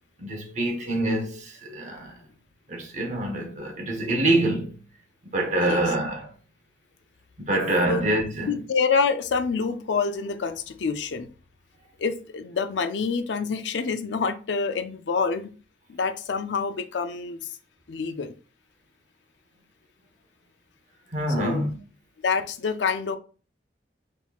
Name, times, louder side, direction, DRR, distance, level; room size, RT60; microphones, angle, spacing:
voice 1, 0.2-2.2 2.7-4.8 5.3-6.3 7.5-8.5 21.1-21.7, right 1 dB, 40° right, 0.9 m, -25 dB
voice 2, 8.5-11.3 12.0-15.4 15.9-17.4 17.9-18.3 21.4-21.7 22.2-23.2, left 5 dB, 85° left, 0.5 m, -27 dB
4.2 x 3.7 x 2.4 m
head